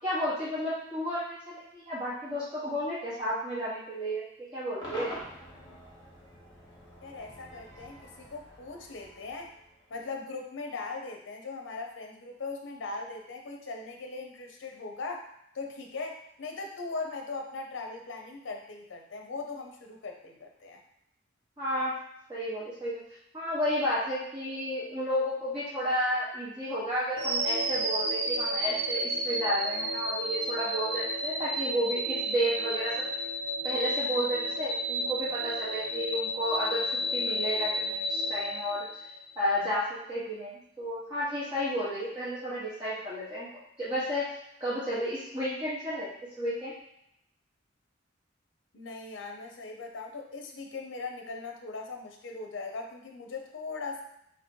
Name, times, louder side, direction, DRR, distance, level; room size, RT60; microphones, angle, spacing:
voice 1, 0.0-4.2 4.5-5.2 21.6-22.0 22.3-23.0 23.3-33.0 33.6-36.8 37.1-38.8 39.4-43.5 43.8-44.3 44.6-46.1 46.4-46.7, equal, 25° right, -11 dB, 1.1 m, -32 dB
Cheering / Crowd / Fireworks, 4.8-10.1, equal, 20° left, 1.0 m, -45 dB
voice 2, 7.0-9.5 9.9-15.3 15.5-20.8 48.7-54.0, left 3 dB, 65° left, 3 dB, 0.6 m, -39 dB
sound 1, 27.2-39.3, equal, 55° right, 0.6 m, -31 dB
3.0 x 2.8 x 4.4 m, 0.77 s
head